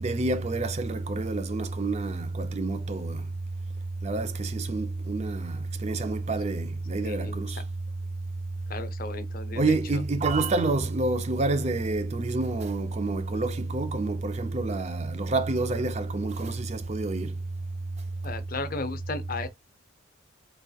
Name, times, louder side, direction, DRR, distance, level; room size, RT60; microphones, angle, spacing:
voice 1, 0.0-3.2 4.0-7.6 9.6-17.3, right 3 dB, 30° right, 0.4 m, -28 dB
voice 2, 7.0-7.4 8.7-10.0 18.2-19.5, left 3 dB, 40° left, 0.6 m, -35 dB
4.1 x 3.5 x 2.3 m
head